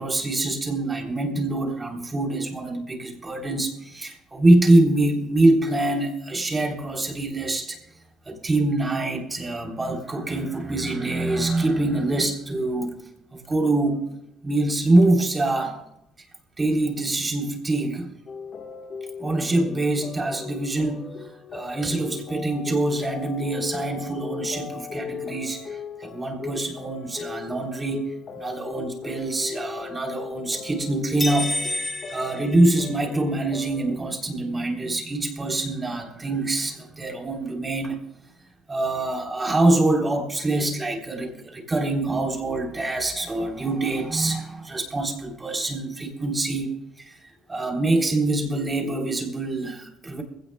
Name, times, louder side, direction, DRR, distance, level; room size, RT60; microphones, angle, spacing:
voice 1, 0.0-7.8 8.3-12.9 13.3-14.1 14.4-15.8 16.6-18.1 19.2-31.6 32.1-38.0 38.7-47.2 47.5-50.2, right 2 dB, 20° right, 1 dB, 3.5 m, -24 dB
sound 1, 18.3-34.0, left 6 dB, 45° left, 1.4 m, -37 dB
sound 2, 31.2-33.3, left 2 dB, 15° left, 2.0 m, -30 dB
21.5 x 17.0 x 2.3 m, 0.81 s
cardioid pair, 95°, 0 cm